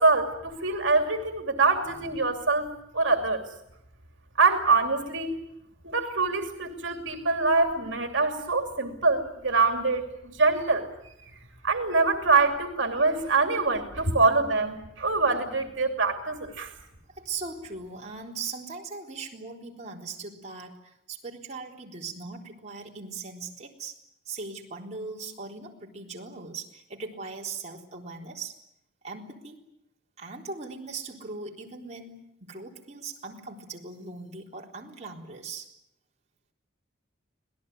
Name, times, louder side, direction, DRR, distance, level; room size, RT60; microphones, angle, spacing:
voice 1, 0.0-2.7 2.9-3.4 4.4-5.4 5.8-11.1 11.6-16.7, right 3 dB, 75° right, 5 dB, 2.8 m, -24 dB
voice 2, 17.1-24.0 24.3-28.6 29.0-29.6 30.2-35.7, right 4 dB, 35° right, -1 dB, 3.9 m, -39 dB
26.0 x 18.0 x 9.5 m, 0.82 s
head